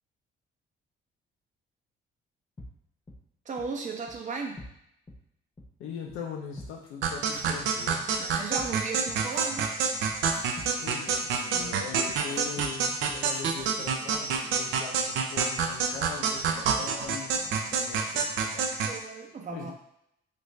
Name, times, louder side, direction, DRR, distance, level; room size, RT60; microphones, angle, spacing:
sound 1, 2.6-2.7 3.1-3.2 3.6-3.7 4.1-4.2 4.6-4.7 5.1-5.2 5.6-5.7 6.1-6.2 6.6-14.4, left 1 dB, 20° left, 0.7 m, -46 dB
voice 1, 3.4-4.7 8.2-9.8 11.5-11.8 12.1-12.3 18.8-19.7, right 4 dB, 40° right, 3 dB, 0.7 m, -36 dB
voice 2, 5.8-8.1 10.8-18.7 19.5-19.7, left 6 dB, 85° left, 0 dB, 0.5 m, -41 dB
sound 2, 7.0-19.0, right 6 dB, 80° right, 0.4 m, -28 dB
3.2 x 2.5 x 3.1 m, 0.76 s
cardioid pair, 90°, 20 cm